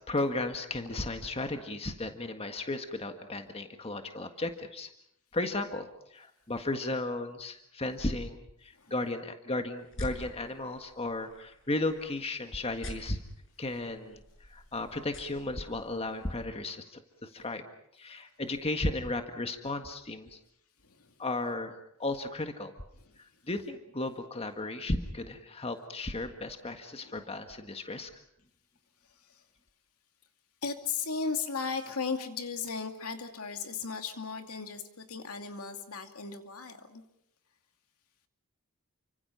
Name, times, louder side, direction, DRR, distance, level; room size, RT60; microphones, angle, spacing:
voice 1, 0.1-4.9 5.3-13.2 13.6-17.6 17.9-20.4 21.2-21.7 22.0-22.7 23.2-28.1, left 2 dB, 25° left, 6 dB, 1.7 m, -35 dB
sound 1, 9.8-16.4, equal, 60° left, 6.0 m, -46 dB
voice 2, 20.8-21.1 23.0-23.4 27.0-27.2 29.0-29.4 30.6-37.0, left 5 dB, 80° left, 5 dB, 2.5 m, -37 dB
29.5 x 25.0 x 5.7 m, 0.74 s
head